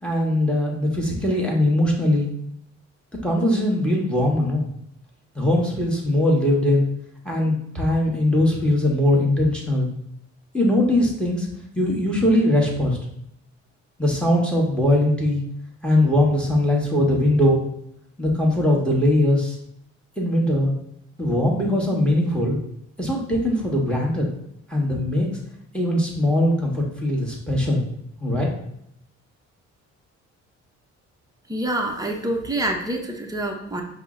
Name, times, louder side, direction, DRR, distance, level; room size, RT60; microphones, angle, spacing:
voice 1, 0.0-2.3 3.2-4.7 5.3-6.9 7.2-9.9 10.5-11.5 11.7-13.0 14.0-15.4 15.8-17.6 18.2-19.6 20.2-20.7 21.2-22.6 23.0-24.3 24.7-25.3 25.7-27.8 28.2-28.5, left 1 dB, 5° left, -1 dB, 1.2 m, -20 dB
voice 2, 31.5-33.8, right 1 dB, 10° right, 1 dB, 0.7 m, -26 dB
5.4 x 2.1 x 3.7 m, 0.74 s
cardioid pair, 90°, 30 cm